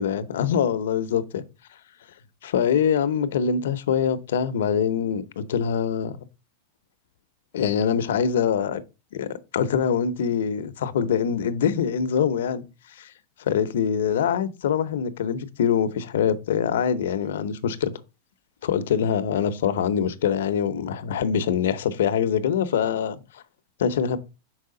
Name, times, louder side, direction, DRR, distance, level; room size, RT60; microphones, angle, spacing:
voice 1, 0.0-1.4 2.4-6.2 7.5-8.8 9.1-9.3 9.5-12.6 13.0-13.1 13.4-17.9 18.6-23.4 23.8-24.2, left 7 dB, 85° left, 0.7 m, -24 dB
6.1 x 4.8 x 3.8 m
supercardioid pair, 150°, 0 cm